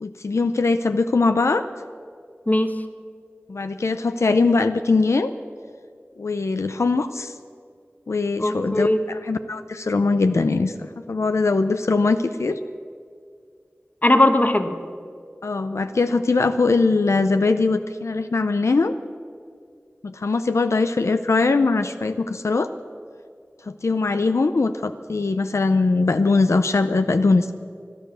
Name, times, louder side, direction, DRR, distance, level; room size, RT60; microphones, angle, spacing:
voice 1, 0.0-1.6 3.5-5.3 6.2-7.3 8.1-12.6 15.4-18.9 20.0-22.7 23.7-27.5, left 3 dB, 90° left, 9 dB, 0.5 m, -21 dB
voice 2, 2.5-2.8 8.4-9.0 14.0-14.8, left 1 dB, 35° left, 8 dB, 1.2 m, -19 dB
17.0 x 11.5 x 7.5 m, 2.3 s
wide cardioid pair, 40°, 5 cm